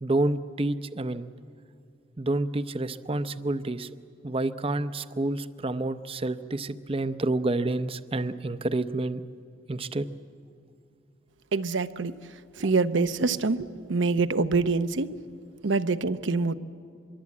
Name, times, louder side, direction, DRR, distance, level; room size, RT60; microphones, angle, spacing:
voice 1, 0.0-1.3 2.2-3.9 4.2-9.2 9.7-10.1, right 2 dB, 30° right, 12 dB, 0.7 m, -29 dB
voice 2, 11.5-12.2 12.5-15.2 15.6-16.6, right 3 dB, 80° right, 11 dB, 0.8 m, -25 dB
24.0 x 23.0 x 8.5 m, 2.3 s
head